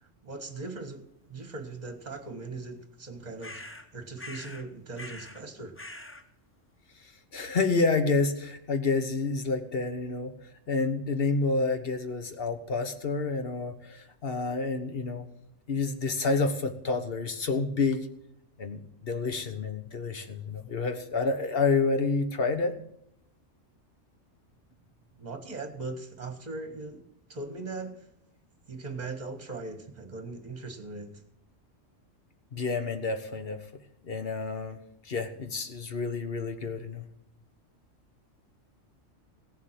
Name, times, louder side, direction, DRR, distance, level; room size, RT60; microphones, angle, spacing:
voice 1, 0.0-5.8 25.2-27.0 27.3-28.1 28.7-31.1, right 3 dB, 35° right, 7 dB, 1.6 m, -39 dB
sound 1, 3.4-3.9 4.2-4.7 4.9-5.4 5.8-6.2, left 2 dB, 10° left, 0.8 m, -43 dB
voice 2, 7.3-10.3 10.7-15.3 15.7-18.1 18.6-22.8 32.5-33.6 34.0-34.8 35.0-37.1, left 4 dB, 50° left, 8 dB, 1.4 m, -29 dB
16.5 x 7.3 x 7.4 m, 0.74 s
omnidirectional pair, 1.3 m